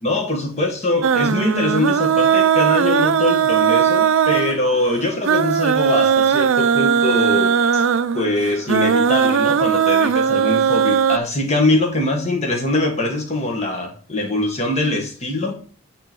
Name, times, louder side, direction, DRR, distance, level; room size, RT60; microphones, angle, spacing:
voice 1, 0.0-7.8 8.1-15.6, left 2 dB, 30° left, 2 dB, 1.5 m, -22 dB
sound 1, 1.0-11.2, right 7 dB, 60° right, 0.4 m, -18 dB
9.7 x 3.8 x 4.6 m, 0.42 s
head